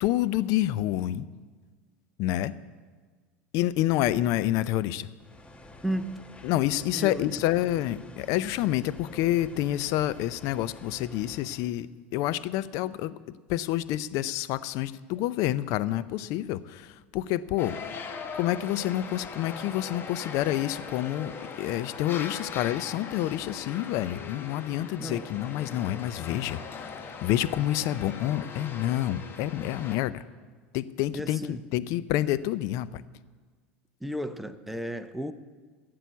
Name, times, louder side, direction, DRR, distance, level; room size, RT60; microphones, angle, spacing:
voice 1, 0.0-1.2 2.2-2.5 3.5-5.1 6.4-13.2 13.5-18.0 18.3-21.3 21.6-26.8 27.2-30.2 30.7-33.0, left 14 dB, 60° left, 17 dB, 0.5 m, -28 dB
sound 1, 5.2-11.7, left 1 dB, 15° left, 1.1 m, -48 dB
voice 2, 5.8-6.2 6.9-7.2 25.0-25.2 31.1-31.6 34.0-35.3, equal, ahead, 9 dB, 0.8 m, -33 dB
sound 2, 17.6-30.0, left 5 dB, 35° left, 1.3 m, -40 dB
12.5 x 7.7 x 8.2 m, 1.5 s
hypercardioid pair, 85°, 6 cm